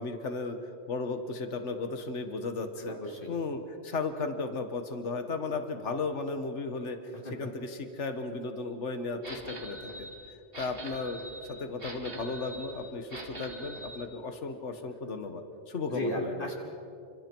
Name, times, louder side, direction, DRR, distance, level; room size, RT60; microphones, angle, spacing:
voice 1, 0.0-3.0 3.3-7.0 7.3-10.1 10.6-16.5, left 3 dB, 75° left, 7 dB, 1.7 m, -35 dB
voice 2, 2.8-3.3 7.2-7.3 15.9-16.5, left 1 dB, 45° left, 0 dB, 3.5 m, -35 dB
sound 1, 9.2-14.1, right 1 dB, 50° right, 2.9 m, -43 dB
30.0 x 26.0 x 4.6 m, 2.5 s
omnidirectional pair, 1.2 m